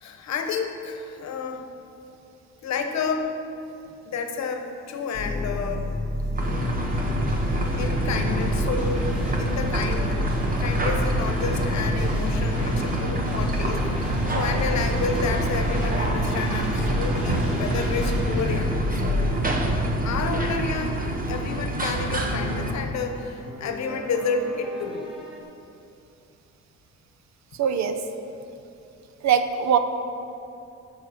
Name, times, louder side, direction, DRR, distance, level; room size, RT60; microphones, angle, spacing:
voice 1, 0.0-1.7 2.6-3.3 4.1-5.9 7.8-10.2 10.6-19.4 20.0-21.0 21.3-25.0, left 5 dB, 65° left, 6 dB, 1.0 m, -30 dB
sound 1, 5.1-20.2, left 1 dB, 15° left, 1.6 m, -29 dB
sound 2, 6.4-21.4 23.1-25.4, left 1 dB, 5° right, 2.1 m, -36 dB
sound 3, 6.4-22.7, right 2 dB, 30° right, 1.2 m, -27 dB
voice 2, 27.6-28.0 29.2-29.8, right 8 dB, 65° right, 8 dB, 0.7 m, -21 dB
13.0 x 6.0 x 4.2 m, 2.7 s
cardioid pair, 90°, 30 cm